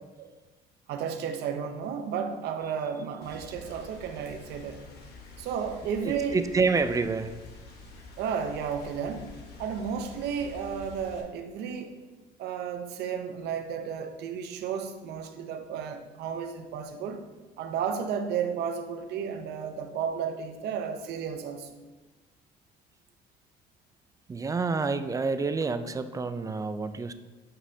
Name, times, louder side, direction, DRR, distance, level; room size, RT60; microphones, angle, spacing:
voice 1, 0.9-4.8 5.4-6.4 8.2-9.3 9.6-12.0 12.4-17.3 17.6-21.8, right 7 dB, 75° right, 7 dB, 0.7 m, -33 dB
Rain, 3.2-11.2, left 3 dB, 75° left, 1.2 m, -48 dB
voice 2, 6.0-7.4 24.3-27.1, right 4 dB, 20° right, 11 dB, 0.4 m, -28 dB
8.7 x 5.4 x 2.7 m, 1.2 s
cardioid pair, 110°, 17 cm